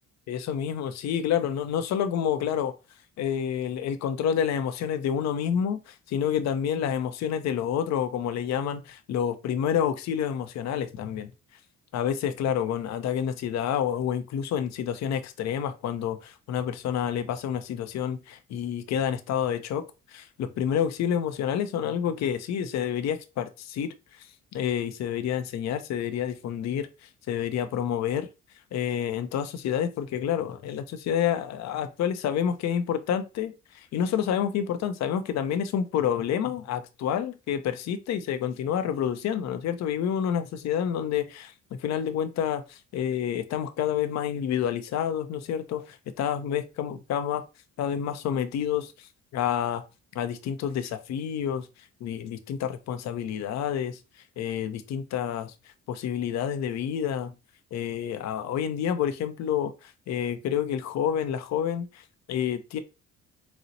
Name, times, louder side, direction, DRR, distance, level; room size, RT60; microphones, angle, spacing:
voice 1, 0.3-2.7 3.2-11.3 11.9-19.8 20.1-28.3 28.7-41.5 41.8-47.4 47.8-49.8 50.1-51.7 52.0-54.0 54.4-55.5 55.9-57.3 57.7-62.8, left 9 dB, 60° left, 0.5 m, -29 dB
4.0 x 2.0 x 2.6 m
cardioid pair, 90°, 30 cm